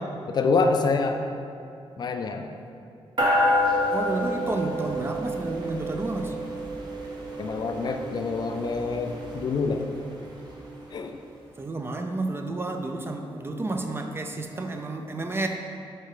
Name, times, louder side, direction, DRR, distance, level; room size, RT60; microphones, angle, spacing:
voice 1, 0.3-1.2 2.0-2.5 7.4-9.8 10.9-11.2, left 4 dB, 45° left, 5 dB, 0.4 m, -26 dB
sound 1, 3.2-10.9, left 1 dB, 45° right, 1.1 m, -29 dB
voice 2, 3.9-6.4 11.6-15.5, right 2 dB, 25° right, 4 dB, 0.4 m, -31 dB
8.0 x 4.1 x 3.7 m, 2.5 s
wide cardioid pair, 160°, 10 cm